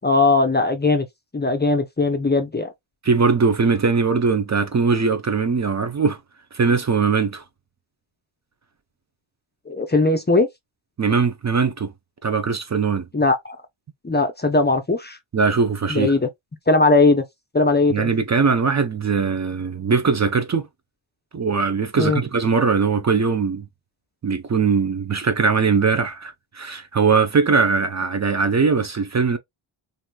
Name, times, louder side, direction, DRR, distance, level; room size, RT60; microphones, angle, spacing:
voice 1, 0.0-1.1 1.3-2.7 9.7-10.5 13.1-13.6 14.0-15.2 15.9-16.3 16.7-17.2 17.5-18.1 22.0-22.2, left 3 dB, 20° left, 0.6 m, -19 dB
voice 2, 3.0-6.2 6.5-7.4 11.0-11.9 12.2-13.0 15.3-16.1 17.9-20.7 21.3-23.7 24.2-29.4, right 5 dB, 35° right, 0.6 m, -20 dB
3.0 x 2.6 x 2.2 m
cardioid pair, 50°, 50 cm